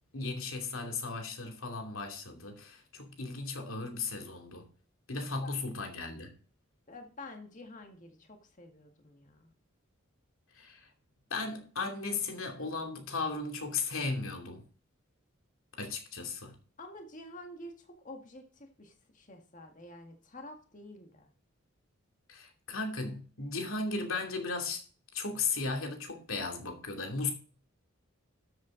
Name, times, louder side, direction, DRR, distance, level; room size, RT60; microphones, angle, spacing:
voice 1, 0.1-4.7 5.1-6.3 10.5-10.9 11.3-14.6 15.8-16.6 22.3-24.8 25.1-27.3, left 3 dB, 75° left, 2.7 m, -36 dB
voice 2, 6.9-9.6 16.8-21.3, left 1 dB, 35° left, 1.8 m, -49 dB
13.0 x 8.0 x 3.9 m
head